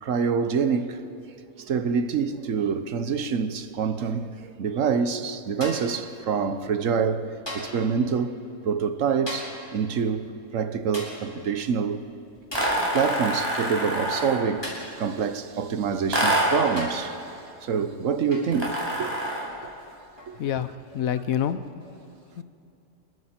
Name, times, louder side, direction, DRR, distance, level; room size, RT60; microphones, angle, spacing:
voice 1, 0.0-1.1 1.6-7.2 7.5-8.4 8.6-12.0 12.9-17.2 17.6-19.3, right 6 dB, 70° right, 1.3 m, -26 dB
sound 1, 5.6-6.0 7.5-7.9 9.3-9.7 10.9-11.3 12.5-12.8 14.6-15.0 16.0-16.1 16.8-17.1 18.3-18.6 20.2-20.4, left 1 dB, 20° left, 4.6 m, -36 dB
sound 2, 12.5-14.5 16.1-16.7 18.5-19.5, right 1 dB, 15° right, 4.8 m, -26 dB
voice 2, 20.4-21.8 22.4-22.5, left 9 dB, 85° left, 1.2 m, -28 dB
27.5 x 22.0 x 4.4 m
omnidirectional pair, 1.4 m